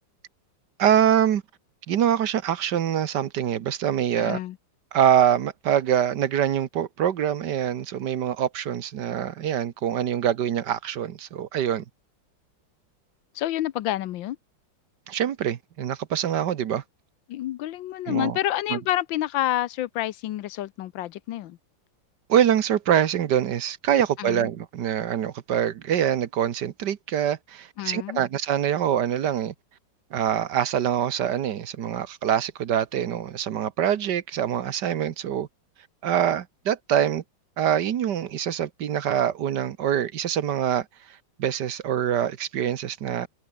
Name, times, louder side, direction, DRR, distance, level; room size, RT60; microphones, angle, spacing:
voice 1, 0.8-1.4 1.9-4.4 4.9-11.8 15.1-16.8 18.1-18.4 18.7-18.8 22.3-29.5 30.1-35.5 36.0-37.2 37.6-40.8 41.4-43.3, right 9 dB, 65° right, 1.6 m, -24 dB
voice 2, 4.2-4.6 13.3-14.4 17.3-21.6 24.2-24.5 27.8-28.2, left 13 dB, 90° left, 1.5 m, -28 dB
omnidirectional pair, 2.0 m